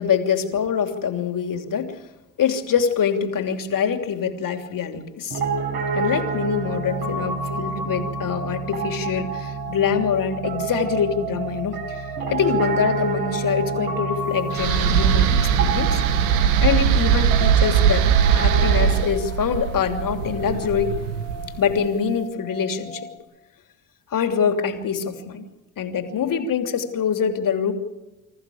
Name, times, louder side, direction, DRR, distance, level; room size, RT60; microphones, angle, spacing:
voice 1, 0.0-2.0 2.4-5.4 5.9-16.0 16.6-18.1 18.3-20.9 21.5-23.1 24.1-25.4 25.8-27.7, left 7 dB, 55° left, 6 dB, 3.0 m, -24 dB
Piano, 5.3-19.0, right 4 dB, 65° right, 5.3 m, -28 dB
sound 1, 5.4-23.2, left 1 dB, 85° left, 2.8 m, -40 dB
sound 2, 14.5-21.7, right 8 dB, 85° right, 1.2 m, -20 dB
26.0 x 14.5 x 8.6 m, 1.1 s
hypercardioid pair, 55°, 40 cm